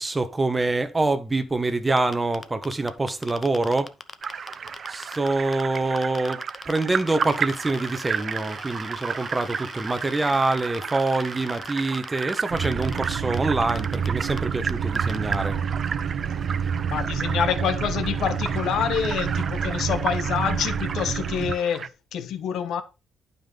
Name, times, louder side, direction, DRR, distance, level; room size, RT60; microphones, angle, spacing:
voice 1, 0.0-3.9 4.9-15.6, right 2 dB, 20° right, 1.3 m, -25 dB
sound 1, 2.0-5.3 5.5-13.4 13.7-14.1 14.4-14.5 14.7-15.4, left 4 dB, 30° left, 0.9 m, -40 dB
sound 2, 4.2-21.9, right 6 dB, 50° right, 0.5 m, -33 dB
sound 3, 12.5-21.5, right 7 dB, 65° right, 1.0 m, -28 dB
voice 2, 16.9-22.8, left 8 dB, 75° left, 1.1 m, -27 dB
11.5 x 5.5 x 3.9 m
cardioid pair, 90°, 0 cm